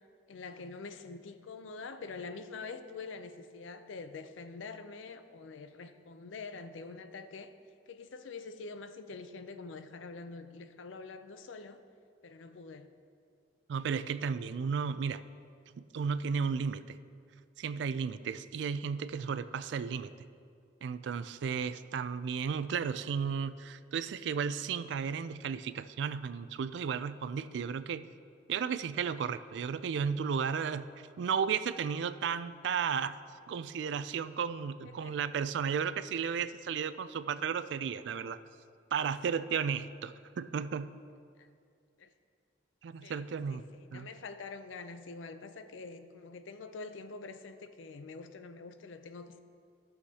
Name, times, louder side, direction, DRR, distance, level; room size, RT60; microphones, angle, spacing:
voice 1, 0.3-7.5 7.9-11.8 12.2-12.9 34.8-35.2 41.4-41.5 42.0-42.1 43.0-49.4, left 4 dB, 85° left, 10 dB, 0.5 m, -45 dB
voice 2, 13.7-15.2 15.8-17.0 17.6-20.1 20.8-28.1 28.5-30.9 31.2-33.2 33.5-38.4 38.9-40.9 42.8-43.6 43.9-44.1, right 6 dB, 70° right, 13 dB, 0.3 m, -34 dB
14.5 x 6.4 x 2.8 m, 2.3 s
head